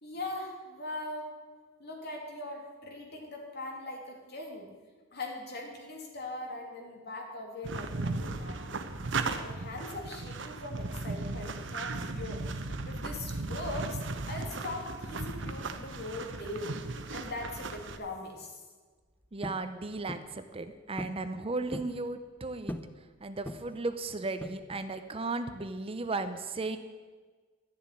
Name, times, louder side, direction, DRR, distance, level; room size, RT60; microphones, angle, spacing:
voice 1, 0.0-1.3 1.8-4.7 5.1-8.8 9.3-12.4 12.8-16.7 17.1-18.6, left 2 dB, 55° left, 1 dB, 2.9 m, -40 dB
sound 1, 7.6-18.0, right 3 dB, 65° right, 1.0 m, -36 dB
voice 2, 19.3-22.8 23.2-26.8, right 3 dB, 30° right, 10 dB, 0.7 m, -35 dB
sound 2, 19.4-19.7 20.1-20.4 21.0-21.2 21.5-22.0 22.7-23.0 23.4-23.8 24.4-24.9, left 1 dB, 10° left, 0.6 m, -40 dB
12.5 x 7.2 x 9.9 m, 1.4 s
head